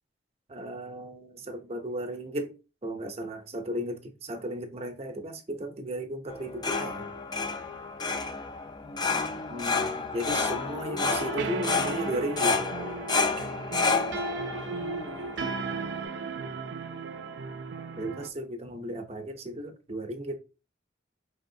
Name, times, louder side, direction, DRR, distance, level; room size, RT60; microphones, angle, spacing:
voice 1, 0.5-2.5 2.8-7.1 9.5-12.6 18.0-20.4, equal, 35° right, 0.6 m, -35 dB
sound 1, 6.3-16.0, left 4 dB, 25° left, 0.4 m, -30 dB
voice 2, 8.8-10.2 10.8-11.1 11.5-12.1 14.7-15.5, left 1 dB, 80° left, 1.1 m, -45 dB
sound 2, 11.0-18.3, right 4 dB, 85° right, 0.4 m, -36 dB
4.6 x 3.4 x 2.7 m
head